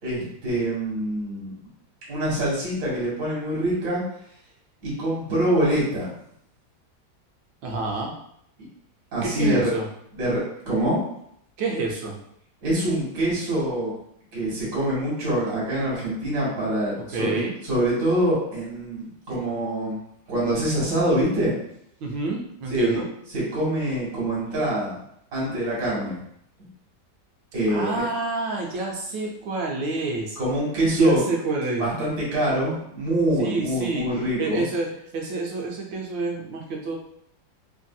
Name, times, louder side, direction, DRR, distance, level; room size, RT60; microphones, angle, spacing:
voice 1, 0.0-1.5 2.1-4.0 4.8-6.1 9.1-9.7 10.1-11.0 12.6-13.9 14.3-20.0 20.3-21.5 22.7-23.0 23.3-24.9 25.3-26.2 27.5-28.0 30.4-31.2 31.8-34.6, right 1 dB, 50° right, -6 dB, 1.7 m, -25 dB
voice 2, 7.6-8.1 9.2-9.9 11.6-12.2 17.1-17.5 22.0-23.1 27.7-30.4 30.9-31.8 33.4-34.1 34.4-34.9 35.1-37.0, right 2 dB, 85° right, 0 dB, 1.3 m, -28 dB
3.4 x 2.6 x 2.2 m, 0.71 s
omnidirectional pair, 2.0 m